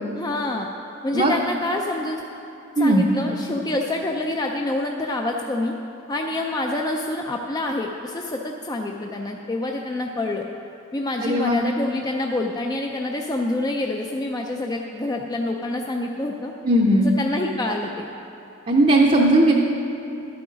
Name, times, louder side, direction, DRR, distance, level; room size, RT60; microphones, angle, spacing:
voice 1, 0.1-0.7 1.0-2.2 2.8-5.7 6.1-10.5 10.9-16.5 17.0-18.1, left 2 dB, 20° left, 2 dB, 0.3 m, -27 dB
voice 2, 2.8-3.1 11.2-11.6 16.6-17.1 18.7-19.5, right 1 dB, 30° right, -2 dB, 0.6 m, -17 dB
11.5 x 8.5 x 5.1 m, 2.9 s
head